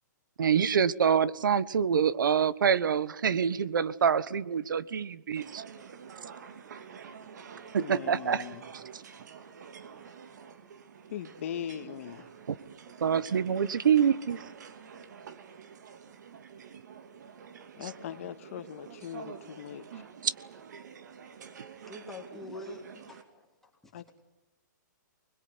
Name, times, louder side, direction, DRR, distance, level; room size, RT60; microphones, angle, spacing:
voice 1, 0.4-5.6 7.7-8.4 8.7-9.0 12.5-12.6 13.0-14.4 17.8-17.9 20.2-20.3, right 7 dB, 85° right, 1.3 m, -26 dB
sound 1, 5.4-23.2, right 6 dB, 60° right, 2.8 m, -48 dB
voice 2, 7.8-8.6 11.1-12.3 17.8-20.0 23.9-24.1, left 9 dB, 45° left, 1.9 m, -40 dB
voice 3, 21.9-23.5 23.8-24.1, left 1 dB, 5° left, 3.2 m, -44 dB
24.5 x 21.5 x 9.7 m
hypercardioid pair, 165°, 10 cm